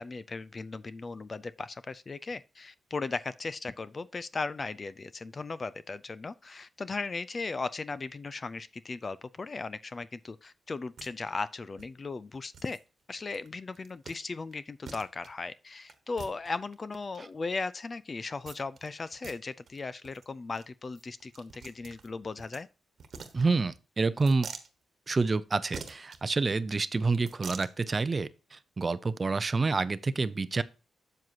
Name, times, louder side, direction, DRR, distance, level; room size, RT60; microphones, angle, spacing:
voice 1, 0.0-12.8 13.1-22.7, left 3 dB, 35° left, 0.4 m, -37 dB
sound 1, 11.0-11.1 11.4-11.5 11.8-11.9 12.5-12.8 13.3-13.5 13.7-14.2 14.5-14.6 14.8-15.3 15.9-17.2 18.4-18.9 19.1-19.4 19.7-19.8 20.0-20.2 20.5-20.6 20.9-22.6 23.0-23.8 24.2-24.7 25.7-26.2 27.1-27.7, right 5 dB, 65° right, 1.2 m, -45 dB
voice 2, 23.3-24.5 25.1-30.6, right 3 dB, 35° right, 0.5 m, -28 dB
7.7 x 7.4 x 2.8 m
cardioid pair, 80°, 0 cm